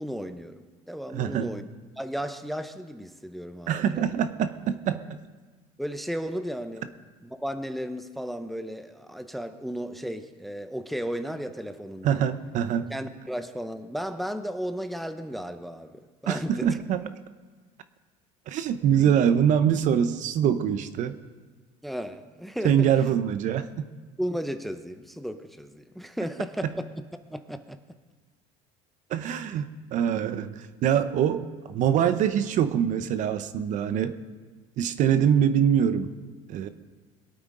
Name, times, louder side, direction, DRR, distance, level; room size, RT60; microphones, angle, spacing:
voice 1, 0.0-1.7 2.0-3.8 5.8-6.9 7.2-12.2 12.9-16.8 21.8-22.9 24.2-26.9 27.3-27.8, equal, ahead, 9 dB, 0.7 m, -34 dB
voice 2, 1.1-1.5 3.7-5.0 12.0-12.9 16.3-17.0 18.5-21.2 22.6-23.9 26.6-26.7 29.1-34.2 34.8-36.1 36.5-36.7, right 9 dB, 55° right, 11 dB, 0.8 m, -24 dB
22.0 x 8.7 x 3.8 m, 1.4 s
supercardioid pair, 110°, 15 cm